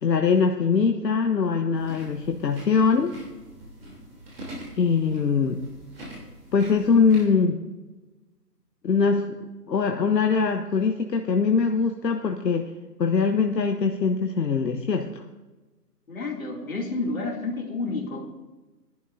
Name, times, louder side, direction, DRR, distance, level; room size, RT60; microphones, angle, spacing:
voice 1, 0.0-3.1 4.7-5.6 6.5-7.6 8.8-9.2 9.7-12.7 13.0-15.2, left 5 dB, 80° left, 4 dB, 1.1 m, -22 dB
sound 1, 1.7-7.2, right 1 dB, 35° right, 3.2 m, -43 dB
voice 2, 16.1-18.2, left 3 dB, 55° left, -1 dB, 2.8 m, -30 dB
18.5 x 11.0 x 2.7 m, 1.1 s
hypercardioid pair, 170°, 49 cm